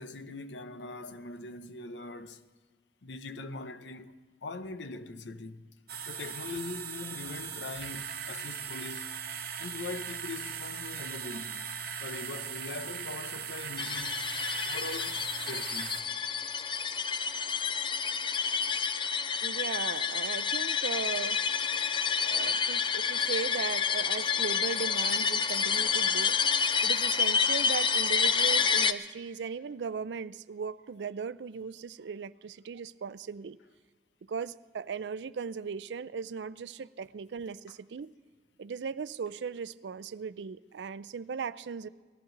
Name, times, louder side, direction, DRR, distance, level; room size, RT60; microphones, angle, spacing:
voice 1, 0.0-2.5 3.0-4.2 4.4-5.8 6.0-9.1 9.6-11.7 12.0-14.2 14.6-16.0, left 3 dB, 85° left, 0.7 m, -42 dB
sound 1, 5.9-16.0, right 7 dB, 60° right, 1.0 m, -39 dB
sound 2, 13.8-28.9, left 6 dB, 30° left, 0.4 m, -29 dB
voice 2, 19.4-21.4 22.3-26.4 26.8-33.6 34.3-38.1 38.6-41.9, right 6 dB, 75° right, 0.4 m, -37 dB
19.5 x 14.0 x 3.9 m
head